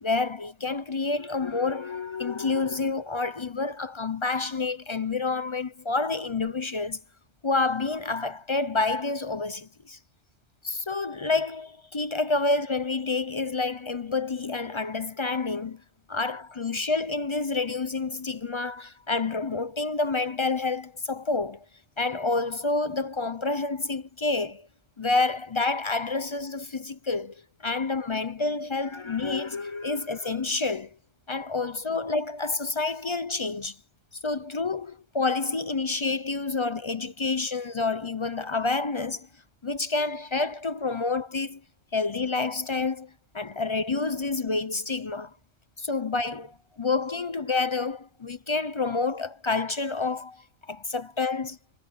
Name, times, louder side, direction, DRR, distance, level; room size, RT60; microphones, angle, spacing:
voice 1, 0.0-7.0 7.4-10.0 10.6-15.8 16.1-21.6 22.0-24.7 25.0-30.9 31.3-33.8 34.2-39.3 39.6-41.6 41.9-43.1 43.3-45.3 45.8-50.4 50.7-51.6, left 3 dB, 35° left, 0.5 m, -28 dB
omnidirectional pair, 1.2 m